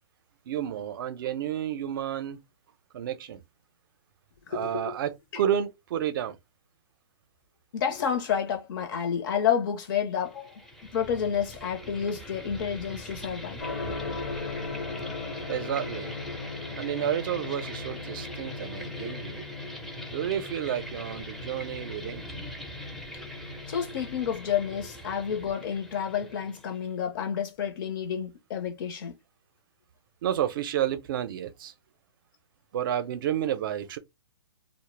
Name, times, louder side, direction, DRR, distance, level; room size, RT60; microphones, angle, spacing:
voice 1, 0.5-2.4 2.9-3.4 4.5-6.4 15.5-16.1 16.8-19.4 20.1-22.3 30.2-31.7 32.7-34.0, right 10 dB, 50° right, 0.5 m, -30 dB
voice 2, 4.5-4.9 5.3-5.4 7.7-10.6 10.9-13.6 23.7-29.1, left 8 dB, 50° left, 0.6 m, -30 dB
sound 1, 10.2-26.9, equal, ahead, 0.5 m, -41 dB
Gong, 13.6-24.4, left 4 dB, 70° left, 1.0 m, -39 dB
2.0 x 2.0 x 3.0 m
hypercardioid pair, 135°, 15 cm